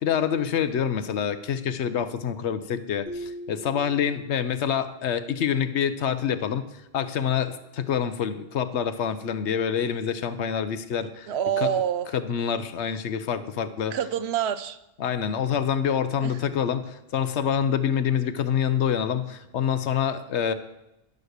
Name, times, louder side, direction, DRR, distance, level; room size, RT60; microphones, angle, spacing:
voice 1, 0.0-6.7 6.9-11.3 11.6-11.7 12.1-13.9 15.0-20.5, left 8 dB, 85° left, 11 dB, 1.1 m, -26 dB
sound 1, 3.1-4.8, equal, 60° left, 1.3 m, -40 dB
voice 2, 11.3-12.1 13.9-14.8 16.2-16.4, right 9 dB, 75° right, 12 dB, 0.9 m, -26 dB
12.0 x 6.3 x 6.6 m, 0.90 s
omnidirectional pair, 1.1 m